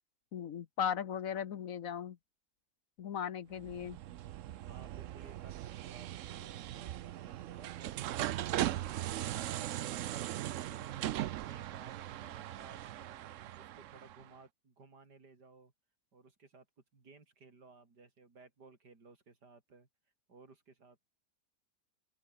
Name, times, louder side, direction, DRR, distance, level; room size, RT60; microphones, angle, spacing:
voice 1, 0.3-2.2 3.0-4.0, left 8 dB, 60° left, 1.3 m, -37 dB
sound 1, 3.6-14.3, right 13 dB, 65° right, 0.8 m, -39 dB
voice 2, 4.7-15.7 16.1-16.7 16.9-19.9 20.3-21.1, right 4 dB, 90° right, 4.2 m, -58 dB
open air
omnidirectional pair, 1.7 m